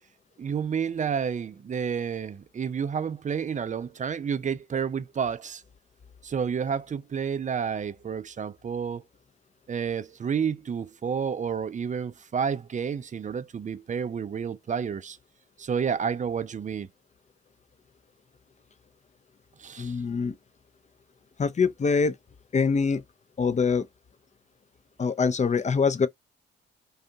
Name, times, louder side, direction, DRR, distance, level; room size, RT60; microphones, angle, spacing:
voice 1, 0.4-5.6 6.2-9.0 9.7-15.2 15.6-16.9 19.6-19.9, right 7 dB, 25° right, 0.4 m, -30 dB
voice 2, 19.8-20.3 21.4-22.2 22.5-23.0 23.4-23.9 25.0-26.1, left 5 dB, 25° left, 0.5 m, -24 dB
2.5 x 2.3 x 2.5 m
hypercardioid pair, 40°, 29 cm